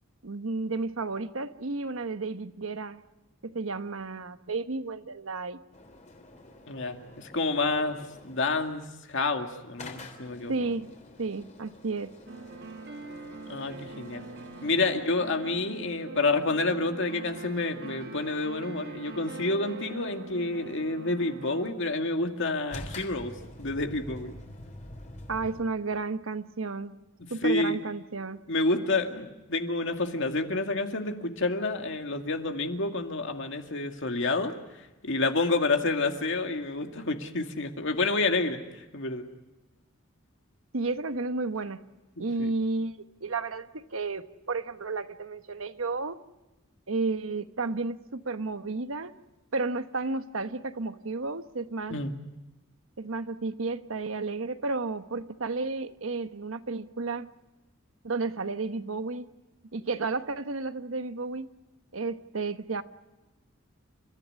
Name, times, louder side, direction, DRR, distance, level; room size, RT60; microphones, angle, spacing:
voice 1, 0.2-3.0 3.4-5.6 10.5-12.1 25.3-27.0 27.3-28.4 40.7-41.8 42.2-46.2 46.9-49.1 49.5-52.0 53.0-57.3 58.0-59.3 59.7-61.5 61.9-62.8, right 3 dB, 75° right, 11 dB, 1.1 m, -32 dB
sound 1, 5.7-8.9 9.8-15.1 22.7-25.6, left 1 dB, 35° left, 3.4 m, -47 dB
voice 2, 6.7-10.7 13.5-14.2 14.6-23.3 23.6-24.3 27.4-27.8 28.5-39.3 42.4-42.5 51.9-52.1, left 3 dB, 65° left, 5 dB, 2.2 m, -29 dB
sound 2, 12.3-21.7, right 3 dB, 55° right, 1.6 m, -43 dB
30.0 x 14.5 x 9.7 m, 1.0 s
head